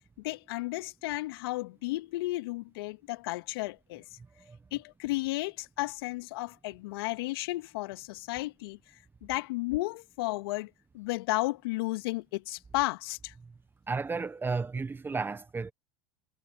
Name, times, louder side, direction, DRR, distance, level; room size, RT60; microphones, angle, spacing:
voice 1, 0.2-4.0 4.7-8.8 9.2-13.3, left 20 dB, 65° left, 2.6 m, -33 dB
voice 2, 13.9-15.7, right 4 dB, 15° right, 1.3 m, -33 dB
hypercardioid pair, 90°, 13 cm